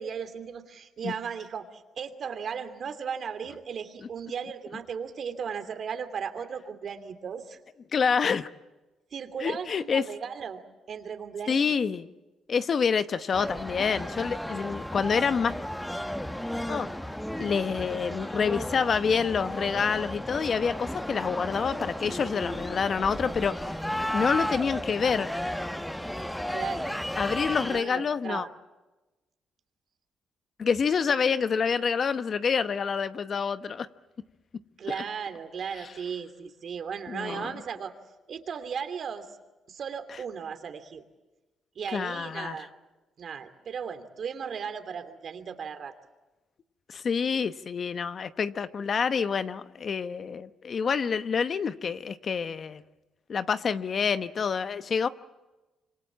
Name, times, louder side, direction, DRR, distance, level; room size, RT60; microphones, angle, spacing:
voice 1, 0.0-7.6 9.1-10.6 10.9-11.7 26.5-26.9 27.7-28.5 34.8-37.9 38.3-39.3 39.7-41.0 41.7-42.7 43.2-45.9, right 7 dB, 55° right, 2.8 m, -36 dB
voice 2, 7.9-8.5 9.4-10.1 11.5-12.1 12.5-15.5 16.7-16.9 17.4-23.7 24.1-25.3 27.2-28.5 30.6-33.9 34.9-35.0 37.1-37.5 41.9-42.6 46.9-52.8 53.3-55.1, left 6 dB, 50° left, 1.0 m, -27 dB
sound 1, 13.3-27.8, equal, 5° left, 1.0 m, -34 dB
26.5 x 25.0 x 7.5 m
cardioid pair, 90°, 0 cm